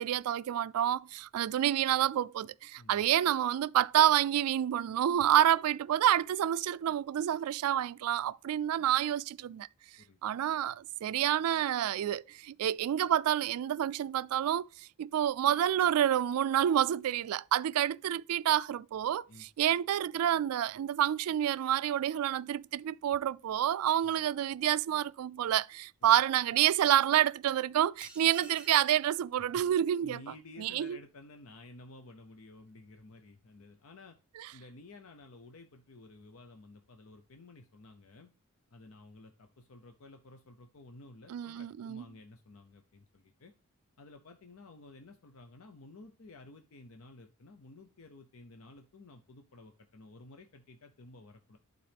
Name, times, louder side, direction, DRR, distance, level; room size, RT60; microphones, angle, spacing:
voice 1, 0.0-9.7 10.2-14.6 15.0-30.2 30.6-31.0 41.3-42.0, right 11 dB, 85° right, 0.3 m, -28 dB
sound 1, 28.0-29.0, right 3 dB, 5° right, 0.6 m, -50 dB
voice 2, 30.0-34.2 34.5-38.3 38.7-43.5 44.0-51.6, left 2 dB, 70° left, 0.7 m, -53 dB
11.5 x 3.9 x 3.4 m
head